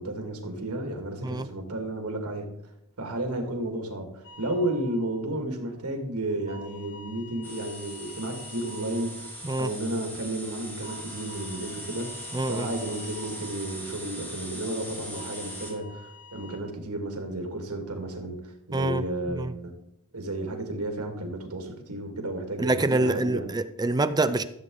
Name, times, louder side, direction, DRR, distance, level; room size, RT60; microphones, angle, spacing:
voice 1, 0.0-2.5 3.0-19.7 20.1-23.5, right 1 dB, 80° right, 2.3 m, -33 dB
sound 1, 4.2-6.0 6.4-10.3 10.8-14.8 15.1-16.6, left 1 dB, 55° left, 1.3 m, -49 dB
sound 2, 7.4-15.8, equal, 10° left, 2.2 m, -40 dB
voice 2, 12.3-12.7 18.7-19.0 19.4-19.5 22.6-24.4, right 2 dB, 20° right, 0.5 m, -26 dB
14.5 x 8.0 x 3.9 m
head